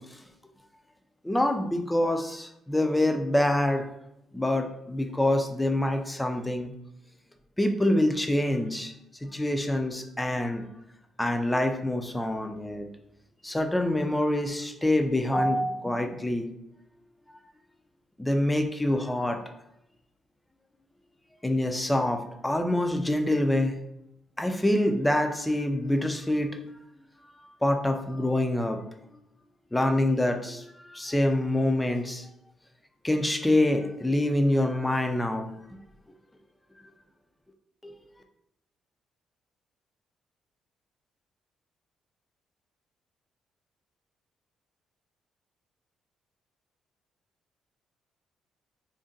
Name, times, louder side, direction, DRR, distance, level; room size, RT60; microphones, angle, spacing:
voice 1, 1.2-3.8 4.3-6.7 7.6-8.9 9.2-10.6 11.2-12.9 13.4-16.5 18.2-19.4 21.4-23.8 24.4-26.6 27.6-28.8 29.7-32.3 33.0-35.5 37.8-37.9, left 1 dB, 10° left, 5 dB, 0.4 m, -26 dB
2.6 x 2.1 x 3.7 m, 0.82 s
cardioid pair, 90°, 0 cm